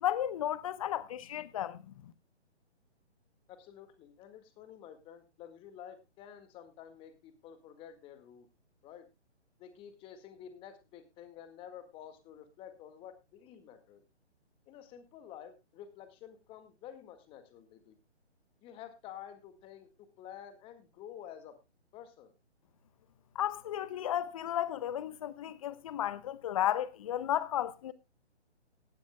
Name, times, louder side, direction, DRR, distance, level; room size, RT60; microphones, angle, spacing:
voice 1, 0.0-2.1 23.3-27.9, left 11 dB, 30° left, 1.0 m, -34 dB
voice 2, 3.5-8.5 8.8-9.1 9.6-14.0 14.7-18.0 18.6-21.6 21.9-22.3, left 9 dB, 15° left, 1.8 m, -50 dB
18.0 x 12.5 x 2.2 m
figure-of-eight pair, 145°, 34 cm